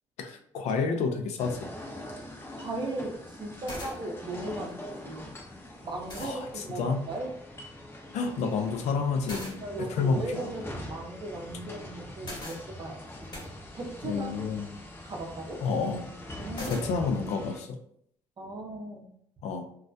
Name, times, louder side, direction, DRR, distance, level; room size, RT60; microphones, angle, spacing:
voice 1, 0.2-1.7 6.2-7.0 8.1-9.6 9.9-10.5 14.0-14.8 15.6-16.1 16.6-17.8 19.4-19.6, left 4 dB, 80° left, 5 dB, 0.4 m, -30 dB
sound 1, 1.4-17.6, left 1 dB, 20° left, 0.6 m, -43 dB
voice 2, 2.5-4.8 5.0-5.3 5.8-7.3 9.6-13.3 13.7-14.4 15.0-15.6 16.4-16.8 18.4-19.1, right 2 dB, 40° right, 1 dB, 0.6 m, -37 dB
sound 2, 3.4-3.5 3.7-4.0 5.5-5.6 6.1-6.4 9.3-9.6 12.2-12.6 13.3-13.5 16.6-16.9, left 1 dB, 40° left, 1.1 m, -39 dB
2.3 x 2.1 x 2.5 m, 0.69 s
cardioid pair, 80°, 11 cm